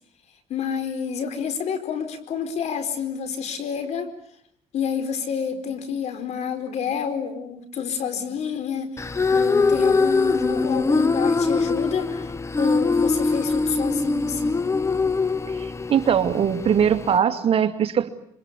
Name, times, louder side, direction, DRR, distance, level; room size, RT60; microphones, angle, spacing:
voice 1, 0.5-4.1 4.7-14.7, left 7 dB, 65° left, 10 dB, 4.7 m, -29 dB
sound 1, 9.0-17.2, left 3 dB, 25° left, 1.1 m, -23 dB
voice 2, 15.5-18.1, right 8 dB, 50° right, 7 dB, 2.5 m, -21 dB
27.0 x 25.5 x 8.4 m, 0.67 s
cardioid pair, 95°, 12 cm